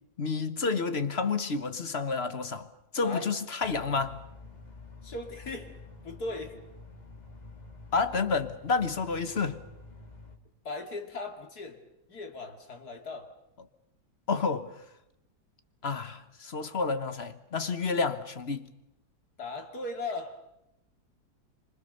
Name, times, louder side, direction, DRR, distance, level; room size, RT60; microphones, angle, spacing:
voice 1, 0.2-2.7 2.9-4.2 7.9-9.6 13.6-13.7 14.3-14.8 15.8-18.7, left 4 dB, 40° left, 1.3 m, -30 dB
voice 2, 3.0-3.3 5.0-5.7 6.0-6.6 10.6-11.8 12.1-13.3 19.4-20.4, left 3 dB, 65° left, 3.0 m, -38 dB
sound 1, 3.6-10.4, left 2 dB, 25° left, 2.5 m, -49 dB
27.5 x 25.0 x 6.8 m
omnidirectional pair, 1.8 m